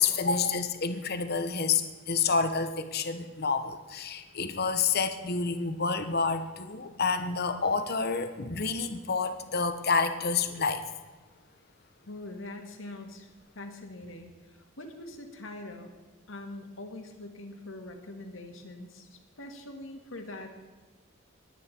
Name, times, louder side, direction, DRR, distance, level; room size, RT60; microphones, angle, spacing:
voice 1, 0.0-10.8, left 5 dB, 50° left, 9 dB, 1.0 m, -28 dB
voice 2, 12.1-13.3 13.6-14.3 14.8-15.9 16.3-19.1 19.4-20.6, left 2 dB, 80° left, 3 dB, 2.1 m, -43 dB
21.0 x 9.1 x 4.5 m, 1.3 s
head